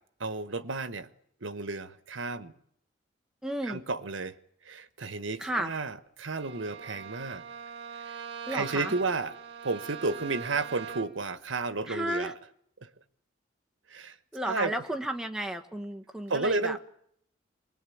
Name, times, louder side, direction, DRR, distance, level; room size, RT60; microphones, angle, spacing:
voice 1, 0.2-1.1 1.4-2.5 3.6-4.3 4.6-7.4 7.9-8.2 8.5-9.3 9.6-12.3 12.8-12.9 13.9-14.2 14.4-14.8 16.3-16.8, right 3 dB, 85° right, 1.2 m, -32 dB
voice 2, 3.4-3.8 5.4-5.8 8.5-8.9 11.9-12.3 14.3-16.8, right 1 dB, 5° right, 1.3 m, -33 dB
Bowed string instrument, 6.3-11.3, right 7 dB, 60° right, 1.7 m, -42 dB
25.5 x 20.5 x 8.6 m
head